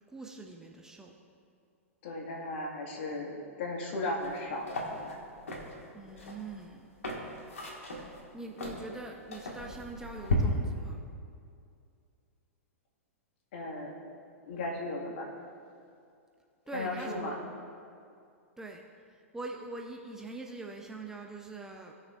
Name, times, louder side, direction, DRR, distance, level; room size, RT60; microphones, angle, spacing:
voice 1, 0.1-1.1 5.9-6.9 8.3-11.0 16.7-17.1 17.4-17.5 18.6-18.8 19.3-21.9, right 3 dB, 5° right, 1 dB, 0.7 m, -43 dB
voice 2, 2.0-5.2 13.5-13.9 14.4-15.3 16.7-17.4, left 2 dB, 50° left, -1 dB, 1.9 m, -36 dB
sound 1, 4.2-4.4 4.7-10.4, left 2 dB, 70° left, 1.7 m, -37 dB
18.0 x 6.5 x 2.5 m, 2.4 s
figure-of-eight pair, 100°, 8 cm